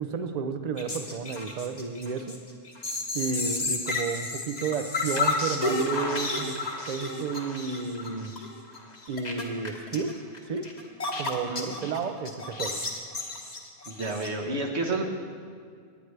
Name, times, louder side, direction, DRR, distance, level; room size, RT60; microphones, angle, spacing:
voice 1, 0.0-2.4 3.1-8.3 9.1-10.2 10.5-10.7 11.2-12.8, right 5 dB, 45° right, 9 dB, 0.6 m, -32 dB
sound 1, 0.8-12.0 12.3-14.3, left 2 dB, 40° left, 1.4 m, -32 dB
voice 2, 11.3-11.7 13.9-15.0, right 2 dB, 70° right, 1 dB, 1.6 m, -30 dB
19.0 x 9.4 x 3.3 m, 2.1 s
omnidirectional pair, 1.2 m